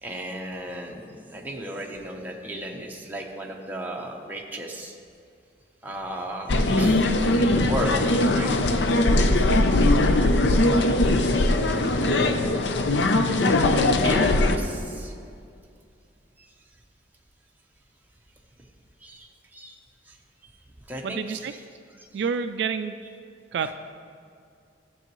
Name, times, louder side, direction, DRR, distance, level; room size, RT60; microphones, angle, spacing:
voice 1, 0.0-5.0 5.8-7.1 7.4-8.0 8.3-8.5 11.2-11.4 14.0-15.3 16.4-16.5 19.0-19.8 20.0-20.2 20.4-20.5 20.9-22.3 23.6-23.7, right 1 dB, 10° right, -1 dB, 0.9 m, -35 dB
sound 1, 6.5-14.6, left 2 dB, 70° left, 0.5 m, -20 dB
voice 2, 21.0-21.5 22.1-23.0 23.5-23.7, right 6 dB, 65° right, 10 dB, 0.3 m, -28 dB
13.5 x 7.0 x 3.0 m, 2.4 s
head